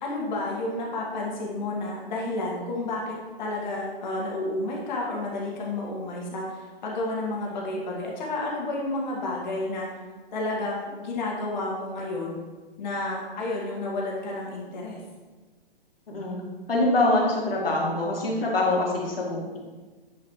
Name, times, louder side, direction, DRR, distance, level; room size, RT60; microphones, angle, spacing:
voice 1, 0.0-9.9 10.3-12.4 12.8-15.0, left 2 dB, 50° left, -3 dB, 1.9 m, -31 dB
voice 2, 16.1-16.4 16.7-19.6, left 2 dB, 70° left, -3 dB, 2.3 m, -24 dB
9.1 x 5.0 x 3.2 m, 1.3 s
figure-of-eight pair, 130°, 30 cm